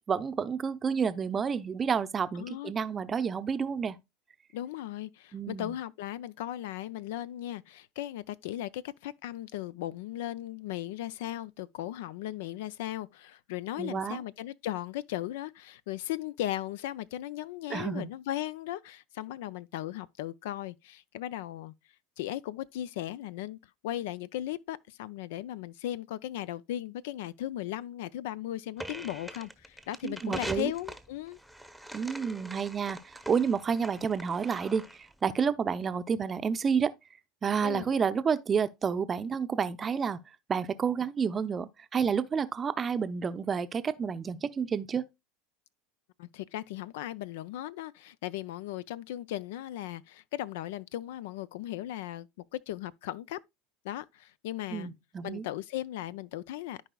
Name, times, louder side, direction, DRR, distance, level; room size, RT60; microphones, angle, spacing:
voice 1, 0.1-4.0 5.3-5.7 13.8-14.2 17.7-18.1 30.0-30.7 31.9-36.9 37.4-40.2 40.5-45.0 54.7-55.4, right 6 dB, 30° right, 0.6 m, -30 dB
voice 2, 2.4-2.7 4.5-21.7 22.2-31.4 37.6-37.9 46.2-52.3 52.5-53.4 53.8-54.9 55.2-56.9, left 13 dB, 70° left, 0.4 m, -37 dB
sound 1, 28.8-35.1, right 1 dB, ahead, 0.9 m, -43 dB
13.5 x 4.7 x 2.2 m
hypercardioid pair, 85°, 0 cm